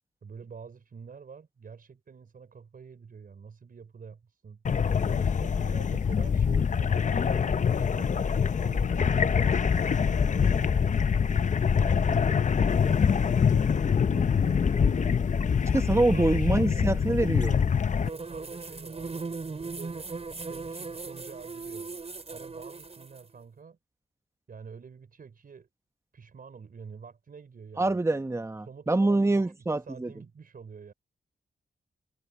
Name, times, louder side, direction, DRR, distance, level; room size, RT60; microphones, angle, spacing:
voice 1, 0.2-4.6 5.1-8.1 8.6-11.1 11.7-15.1 16.0-17.6 18.1-20.1 20.5-21.9 22.3-23.8 24.5-25.7 26.1-28.0 28.6-30.9, right 5 dB, 60° right, 4.6 m, -47 dB
sound 1, 4.7-18.1, left 6 dB, 50° left, 0.7 m, -25 dB
voice 2, 15.7-17.5 27.8-30.1, right 2 dB, 15° right, 1.1 m, -25 dB
sound 2, 18.0-23.2, right 4 dB, 40° right, 5.0 m, -38 dB
cardioid pair, 70°, 17 cm